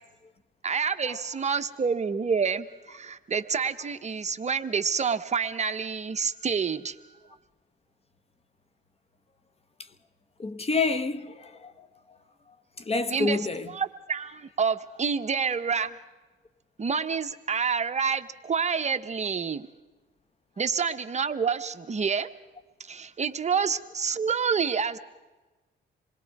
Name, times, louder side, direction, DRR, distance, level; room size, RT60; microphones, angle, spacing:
voice 1, 0.6-7.0 13.1-13.4 13.7-15.9 16.8-19.7 20.6-22.3 22.8-25.0, right 6 dB, 35° right, 1.0 m, -28 dB
voice 2, 10.4-11.9 12.8-13.7, left 4 dB, 30° left, 1.0 m, -28 dB
27.0 x 21.0 x 4.8 m
cardioid pair, 90°, 20 cm